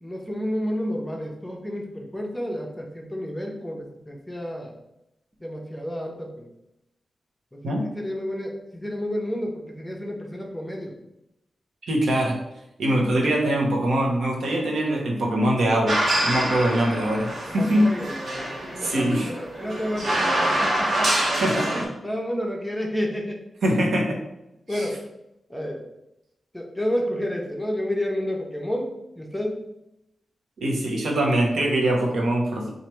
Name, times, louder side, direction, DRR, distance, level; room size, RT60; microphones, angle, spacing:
voice 1, 0.0-4.7 5.4-6.5 7.5-11.0 17.5-21.3 21.7-23.4 24.7-25.0 25.5-25.8 26.5-28.9 29.2-29.6, equal, 5° left, 0 dB, 0.6 m, -30 dB
voice 2, 11.9-12.4 12.8-18.0 18.8-19.3 21.4-21.9 23.6-24.2 24.7-24.9 30.6-32.7, right 1 dB, 80° right, 0 dB, 0.9 m, -23 dB
sound 1, 15.9-21.8, right 1 dB, 50° right, 1.0 m, -26 dB
3.2 x 2.4 x 4.4 m, 0.87 s
wide cardioid pair, 165°, 0 cm